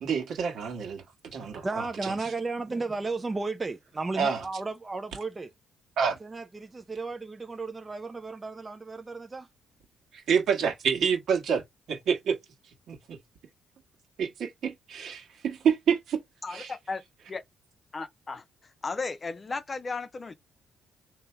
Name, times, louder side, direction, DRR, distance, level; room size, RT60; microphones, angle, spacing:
voice 1, 0.0-1.0 1.3-2.1 4.2-4.4 6.0-6.2 10.3-11.6 11.9-12.4 12.9-13.2 14.2-16.2 16.5-16.7, right 7 dB, 70° right, 1.6 m, -28 dB
voice 2, 1.6-5.5 6.2-9.5, right 3 dB, 25° right, 0.6 m, -34 dB
voice 3, 16.4-17.0 17.3-17.4 17.9-18.4 18.8-20.3, left 4 dB, 30° left, 0.7 m, -35 dB
3.4 x 2.9 x 4.5 m
cardioid pair, 90°, 0 cm